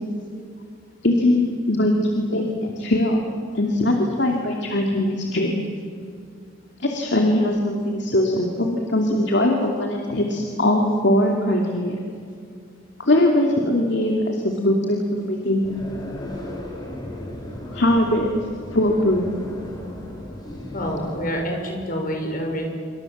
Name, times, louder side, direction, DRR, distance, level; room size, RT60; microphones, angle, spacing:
voice 1, 1.0-3.2 3.5-5.5 6.8-11.9 13.0-15.6 17.7-18.3 18.7-19.2, left 1 dB, 60° left, 1 dB, 2.7 m, -21 dB
sound 1, 15.6-21.3, left 1 dB, 20° left, 4.2 m, -35 dB
voice 2, 20.7-22.7, equal, 45° left, 2 dB, 6.1 m, -27 dB
27.0 x 25.0 x 7.4 m, 2.3 s
head